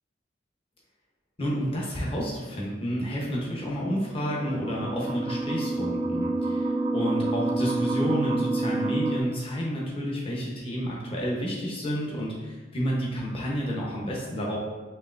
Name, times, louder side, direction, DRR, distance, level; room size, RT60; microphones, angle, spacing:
voice 1, 1.4-14.6, equal, 30° left, -4 dB, 0.8 m, -30 dB
sound 1, 3.9-9.2, right 2 dB, 35° right, 0.3 m, -28 dB
4.4 x 3.1 x 2.5 m, 1.2 s
head